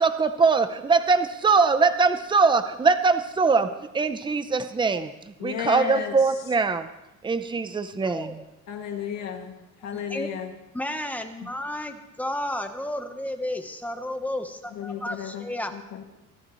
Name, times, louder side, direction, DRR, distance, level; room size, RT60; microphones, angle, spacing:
voice 1, 0.0-3.7 3.9-6.9 7.2-8.4, right 4 dB, 15° right, 9 dB, 0.7 m, -22 dB
voice 2, 5.4-6.1 8.7-9.5 9.8-10.5 14.7-16.0, left 8 dB, 60° left, 2 dB, 2.4 m, -33 dB
voice 3, 8.0-8.4 9.9-10.3 10.7-15.7, left 1 dB, 5° left, 6 dB, 1.1 m, -32 dB
24.5 x 12.0 x 3.2 m, 0.92 s
cardioid pair, 145°, 31 cm